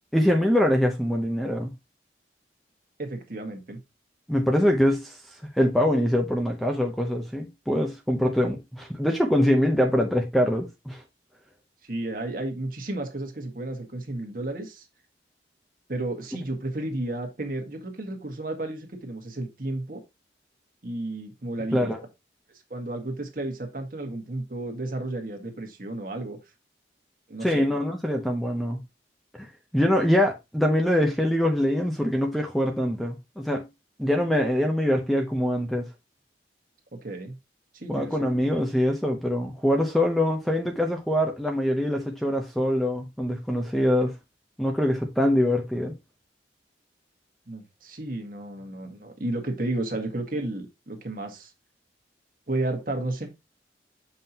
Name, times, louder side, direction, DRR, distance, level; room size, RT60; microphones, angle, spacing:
voice 1, 0.1-1.7 4.3-5.2 5.6-11.0 21.7-22.0 27.4-28.8 29.3-29.5 29.7-33.7 34.0-35.9 37.9-44.1 44.6-45.9, equal, ahead, 0.7 m, -24 dB
voice 2, 3.0-3.8 11.8-14.8 15.9-20.0 20.8-21.9 22.7-26.4 27.3-27.6 36.9-37.4 37.7-38.3 47.5-51.5 52.5-53.3, right 2 dB, 50° right, 1.6 m, -32 dB
7.4 x 5.6 x 2.8 m
head